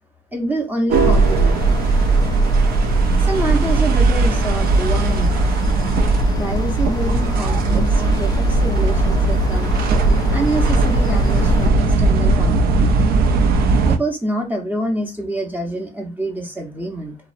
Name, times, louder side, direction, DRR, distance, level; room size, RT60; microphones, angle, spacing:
voice 1, 0.3-1.8 3.2-5.4 6.4-9.8 10.3-13.0 13.8-17.2, right 1 dB, 10° right, 0.6 m, -26 dB
sound 1, 0.9-11.7, left 5 dB, 25° left, 0.3 m, -33 dB
sound 2, 0.9-14.0, right 3 dB, 65° right, 0.4 m, -17 dB
2.6 x 2.0 x 2.4 m
cardioid pair, 110°, 17 cm